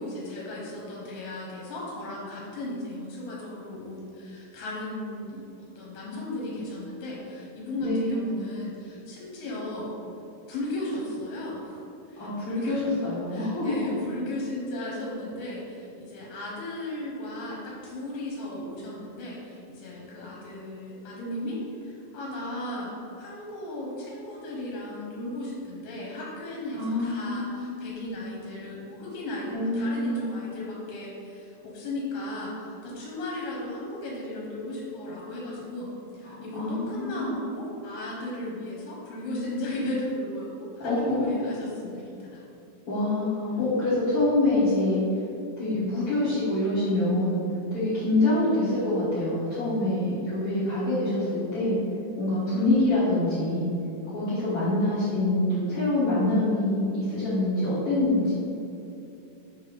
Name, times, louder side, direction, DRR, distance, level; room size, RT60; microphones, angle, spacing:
voice 1, 0.0-9.9 10.5-11.8 12.1-13.0 13.3-42.4, left 1 dB, 75° left, -4 dB, 2.4 m, -36 dB
voice 2, 7.8-8.3 12.2-13.7 26.7-27.7 29.5-30.3 36.2-37.4 40.8-41.4 42.9-45.0 45.6-47.4 47.7-51.8 52.2-53.7 54.1-58.3, left 2 dB, 55° left, -12 dB, 1.6 m, -25 dB
6.3 x 3.3 x 5.0 m, 2.8 s
omnidirectional pair, 4.2 m